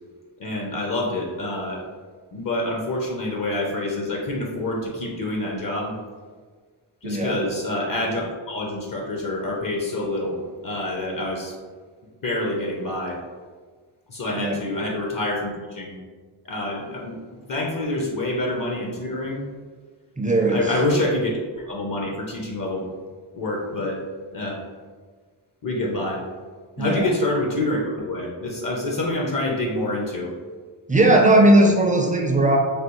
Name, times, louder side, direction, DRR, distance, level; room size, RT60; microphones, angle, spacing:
voice 1, 0.4-1.8 2.3-5.9 7.0-10.4 10.6-11.5 12.2-13.2 14.1-16.0 16.5-17.2 17.5-19.4 20.5-21.3 21.7-22.8 23.3-24.0 24.3-24.6 25.6-26.2 26.8-30.3, left 1 dB, 45° left, -1 dB, 0.6 m, -27 dB
voice 2, 7.0-7.4 14.4-14.6 20.2-20.7 26.8-27.1 30.9-32.6, right 1 dB, 20° right, 1 dB, 0.4 m, -18 dB
3.4 x 2.3 x 2.9 m, 1.5 s
cardioid pair, 70°, 46 cm